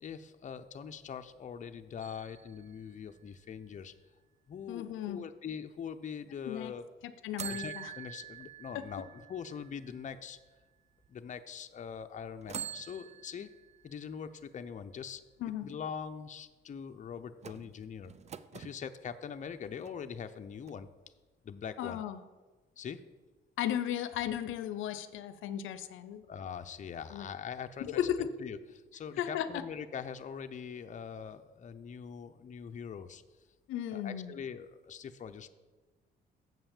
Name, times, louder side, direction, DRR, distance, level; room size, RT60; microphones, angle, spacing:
voice 1, 0.0-3.9 4.5-6.8 7.5-10.4 11.1-13.5 13.8-15.2 15.6-18.1 18.5-20.9 21.4-22.0 22.8-23.0 26.3-28.6 28.9-33.2 33.9-35.5, left 7 dB, 40° left, 8 dB, 0.6 m, -42 dB
sound 1, 2.0-3.8 7.4-10.5 11.0-11.1 12.4-14.2 17.4-18.8 19.5-20.4 20.7-20.8, right 8 dB, 35° right, 0.4 m, -46 dB
voice 2, 4.7-5.2 6.5-6.7 7.0-7.9 8.7-8.8 15.4-15.7 21.8-22.2 23.6-26.2 27.1-27.3 27.8-28.4 29.2-29.6 33.7-34.3, left 10 dB, 85° left, 12 dB, 0.6 m, -35 dB
7.4 x 5.7 x 7.2 m, 1.3 s
cardioid pair, 90°, 20 cm